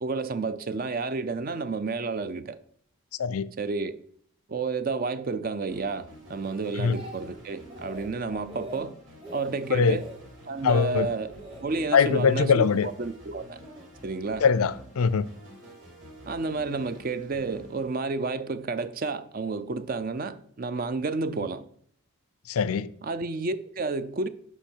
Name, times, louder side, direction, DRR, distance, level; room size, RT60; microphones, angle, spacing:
voice 1, 0.0-2.6 3.6-4.0 4.5-9.0 9.3-10.1 10.5-11.4 11.6-12.7 13.0-13.6 14.0-14.4 16.3-21.7 23.0-24.3, right 4 dB, 40° right, 0.4 m, -31 dB
sound 1, 5.7-18.6, equal, 55° right, 3.7 m, -49 dB
Speech, 6.4-7.4 7.7-8.1 8.4-8.8 9.2-9.5 9.9-10.2 10.6-10.9 11.3-11.6 12.0-12.9 13.6-13.9, right 1 dB, 25° right, 1.0 m, -44 dB
voice 2, 10.6-11.1 11.9-12.9 14.4-15.3 22.5-22.9, left 6 dB, 75° left, 0.4 m, -22 dB
9.9 x 5.6 x 4.5 m
head